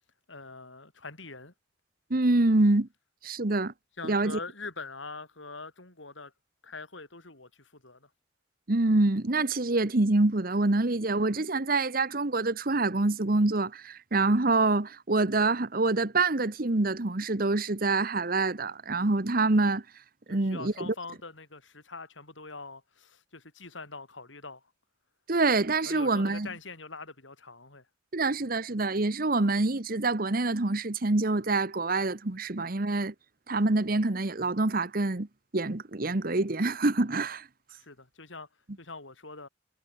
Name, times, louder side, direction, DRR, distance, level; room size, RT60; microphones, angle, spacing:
voice 1, 0.3-1.5 4.0-6.3 6.6-8.1 20.3-24.6 25.8-27.9 37.8-38.5 38.8-39.5, left 3 dB, 80° left, 6.1 m, -43 dB
voice 2, 2.1-2.9 3.2-3.7 4.0-4.4 8.7-19.8 20.3-20.9 25.3-26.5 28.1-33.1 33.5-35.3 35.5-37.5, right 2 dB, 50° right, 1.1 m, -26 dB
head